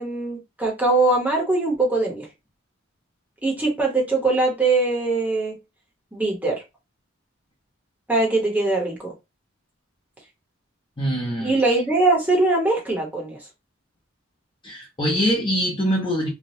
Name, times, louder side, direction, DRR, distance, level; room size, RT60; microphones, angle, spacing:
voice 1, 0.0-2.3 3.4-5.5 6.1-6.6 8.1-9.1 11.4-13.4, right 2 dB, 10° right, 0.9 m, -21 dB
voice 2, 11.0-11.5 14.6-16.3, equal, 20° left, 0.7 m, -23 dB
3.2 x 2.2 x 2.6 m
head